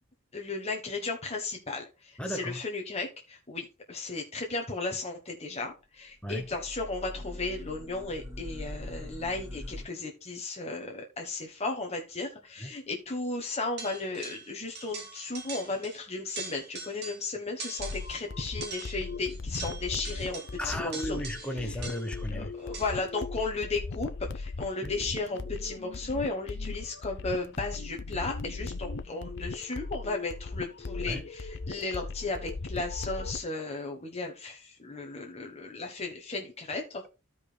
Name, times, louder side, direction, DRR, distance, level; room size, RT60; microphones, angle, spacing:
voice 1, 0.3-21.2 22.3-37.0, left 3 dB, 30° left, 1.2 m, -35 dB
voice 2, 2.2-2.6 6.2-6.5 12.6-12.7 20.6-22.5 24.8-24.9 31.1-31.2, equal, 5° left, 1.0 m, -35 dB
sound 1, 6.2-9.8, left 1 dB, 15° right, 2.9 m, -42 dB
sound 2, 13.8-14.5 14.7-16.0 16.3-17.3 17.6-18.2 18.6-22.2 22.7-23.1, right 4 dB, 50° right, 2.0 m, -42 dB
sound 3, 17.8-33.4, left 3 dB, 55° left, 0.7 m, -38 dB
15.0 x 5.2 x 2.2 m
head